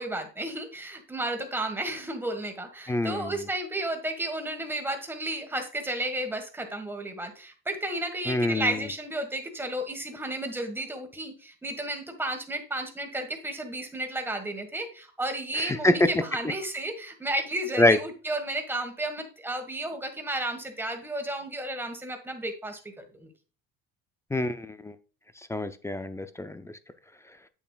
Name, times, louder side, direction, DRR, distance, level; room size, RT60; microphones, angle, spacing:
voice 1, 0.0-23.3, right 1 dB, 5° right, 5 dB, 1.6 m, -33 dB
voice 2, 2.9-3.3 8.3-8.8 15.6-15.9 17.8-18.0 24.3-24.9 25.5-26.7, left 1 dB, 10° left, 11 dB, 0.5 m, -25 dB
8.2 x 7.1 x 2.4 m, 0.37 s
cardioid pair, 120°, 31 cm